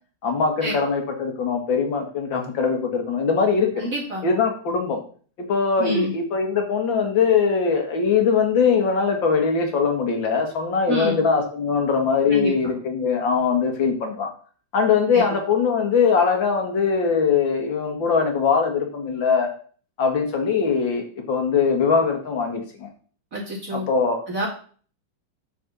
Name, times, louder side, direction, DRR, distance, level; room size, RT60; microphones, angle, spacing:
voice 1, 0.2-3.7 4.2-5.0 5.4-14.3 14.7-19.5 20.0-22.9 23.7-24.2, left 5 dB, 80° left, 3 dB, 2.5 m, -21 dB
voice 2, 3.8-4.2 5.8-6.1 10.9-11.2 12.3-12.7 15.1-15.2 23.3-23.9 24.3-24.5, equal, 45° right, -4 dB, 2.5 m, -27 dB
8.7 x 4.6 x 6.8 m, 0.43 s
omnidirectional pair, 2.1 m